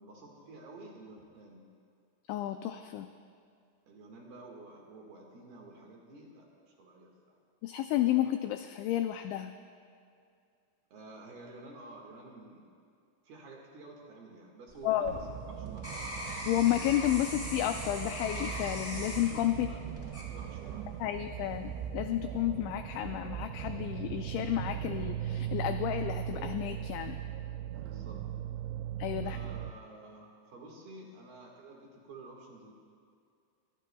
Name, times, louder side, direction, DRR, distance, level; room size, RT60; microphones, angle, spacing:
voice 1, 0.0-1.6 3.9-7.4 10.9-12.8 13.2-16.2 19.5-20.9 27.7-28.2 29.2-32.7, right 2 dB, 60° right, -1 dB, 3.2 m, -51 dB
voice 2, 2.3-3.1 7.6-9.5 14.8-15.1 16.5-19.7 21.0-27.2 29.0-29.4, left 13 dB, 85° left, 7 dB, 2.6 m, -31 dB
sound 1, 14.7-20.9 21.4-21.9, equal, 20° left, 2.1 m, -41 dB
sound 2, 15.1-29.7, right 10 dB, 85° right, 2.6 m, -39 dB
25.0 x 21.0 x 2.3 m, 2.4 s
omnidirectional pair, 5.8 m